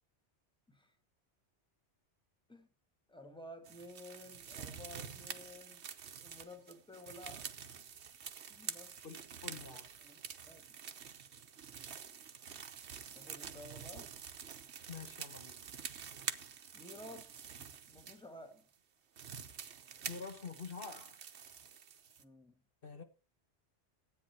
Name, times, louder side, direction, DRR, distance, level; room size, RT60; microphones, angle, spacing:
voice 1, 3.1-5.9 6.2-7.6 8.5-9.0 9.6-10.2 10.4-10.7 13.1-14.1 16.7-17.4 17.9-18.7 22.2-22.6, left 1 dB, 5° left, 1.7 m, -53 dB
sound 1, 3.6-18.2 18.7-18.8 19.2-22.2, right 7 dB, 75° right, 1.2 m, -47 dB
voice 2, 9.0-9.9 14.9-15.6 20.1-21.2 22.8-23.0, left 5 dB, 55° left, 1.5 m, -47 dB
13.0 x 8.9 x 4.4 m
omnidirectional pair, 1.2 m